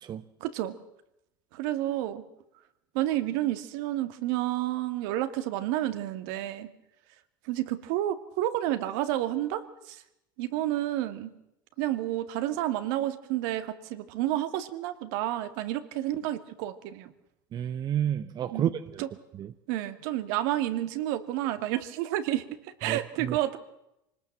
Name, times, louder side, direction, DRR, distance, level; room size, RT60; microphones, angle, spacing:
voice 1, 0.4-0.7 1.5-2.2 2.9-6.7 7.4-10.0 10.4-11.3 11.8-17.1 18.5-18.7 19.0-19.1 19.7-23.6, right 14 dB, 65° right, 9 dB, 2.2 m, -30 dB
voice 2, 17.5-19.0 19.4-19.5 22.9-23.4, right 10 dB, 40° right, 12 dB, 1.0 m, -30 dB
25.0 x 19.5 x 7.5 m, 0.85 s
hypercardioid pair, 85°, 12 cm